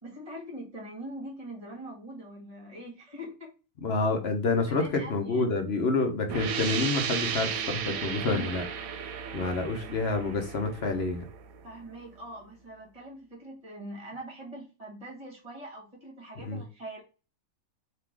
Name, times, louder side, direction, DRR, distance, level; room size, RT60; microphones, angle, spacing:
voice 1, 0.0-3.5 4.6-5.5 8.2-8.6 9.3-9.6 11.6-17.0, right 1 dB, 25° right, 1.7 m, -43 dB
voice 2, 3.8-8.7 9.0-11.2 16.4-16.6, left 3 dB, 55° left, 0.9 m, -28 dB
sound 1, 6.3-11.8, right 7 dB, 75° right, 1.0 m, -34 dB
3.7 x 2.9 x 4.6 m
omnidirectional pair, 1.5 m